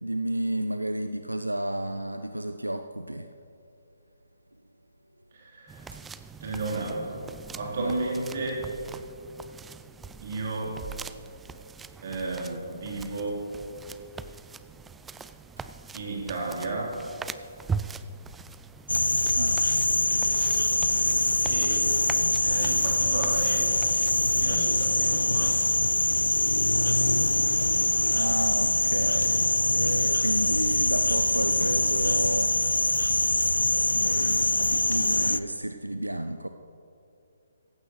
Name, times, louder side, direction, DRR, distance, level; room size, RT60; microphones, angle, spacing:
voice 1, 0.0-3.3 5.9-6.0 7.8-7.9 19.3-19.6 28.1-32.6 33.9-36.5, right 1 dB, 90° right, 8 dB, 0.5 m, -31 dB
voice 2, 5.3-6.0 6.4-8.6 8.9-9.0 10.2-10.9 12.0-13.4 15.9-16.9 21.4-21.8 22.4-23.6 24.3-25.5, right 2 dB, 50° right, -2 dB, 3.6 m, -33 dB
sound 1, 5.7-25.2, right 5 dB, 10° right, 0.3 m, -42 dB
sound 2, 18.9-35.4, left 2 dB, 85° left, 0.5 m, -24 dB
17.0 x 15.5 x 3.1 m, 2.7 s
figure-of-eight pair, 135°, 0 cm